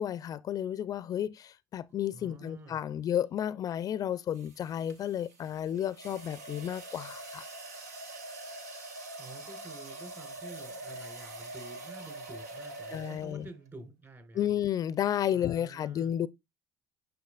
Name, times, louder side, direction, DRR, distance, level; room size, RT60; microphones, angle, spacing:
voice 1, 0.0-7.5 12.9-13.4 14.3-16.3, left 10 dB, 45° left, 0.4 m, -32 dB
voice 2, 2.1-2.8 9.2-14.5 15.3-16.1, right 2 dB, 30° right, 3.8 m, -49 dB
sound 1, 2.4-2.7 4.4-13.6, right 2 dB, 90° right, 0.9 m, -44 dB
9.3 x 5.8 x 2.3 m
hypercardioid pair, 65°, 8 cm